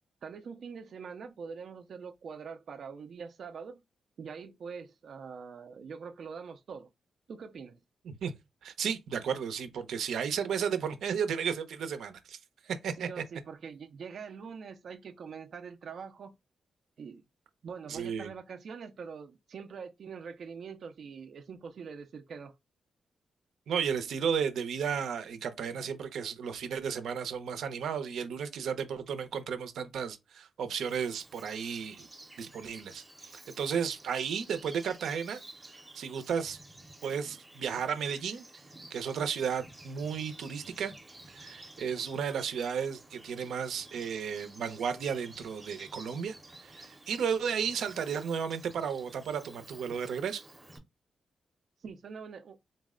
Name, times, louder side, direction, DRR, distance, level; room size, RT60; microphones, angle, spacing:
voice 1, 0.2-3.8 4.2-6.9 7.3-7.8 13.0-16.3 17.0-17.2 17.6-22.6 51.8-52.6, right 6 dB, 50° right, 0.4 m, -44 dB
voice 2, 8.6-12.4 12.6-13.2 17.9-18.3 23.7-32.1 32.4-35.4 35.7-36.6 37.0-38.4 38.9-40.9 41.3-50.4, right 7 dB, 90° right, 0.6 m, -33 dB
Bird vocalization bird call bird song, 30.8-50.8, right 2 dB, 10° right, 0.7 m, -52 dB
4.0 x 2.1 x 3.6 m
wide cardioid pair, 170°, 0 cm